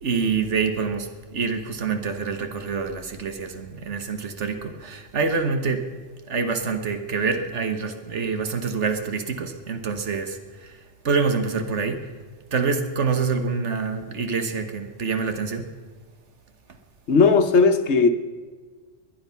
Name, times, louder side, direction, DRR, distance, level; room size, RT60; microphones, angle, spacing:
voice 1, 0.0-6.0 6.3-10.8 11.0-12.1 12.5-15.7, right 5 dB, 75° right, 1.6 m, -26 dB
voice 2, 17.1-18.1, left 4 dB, 70° left, 1.3 m, -17 dB
20.0 x 10.5 x 5.7 m
omnidirectional pair, 1.2 m